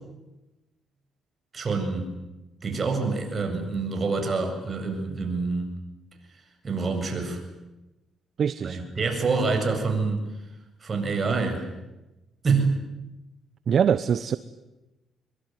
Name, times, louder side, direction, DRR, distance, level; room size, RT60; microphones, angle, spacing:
voice 1, 1.5-2.1 2.6-5.8 6.6-7.4 8.6-10.2 10.8-11.6 12.4-12.7, right 4 dB, 35° right, 4 dB, 7.6 m, -26 dB
voice 2, 8.4-8.8 13.7-14.4, right 7 dB, 55° right, 14 dB, 1.0 m, -23 dB
24.5 x 24.0 x 9.4 m, 1.0 s
cardioid pair, 90°, 0 cm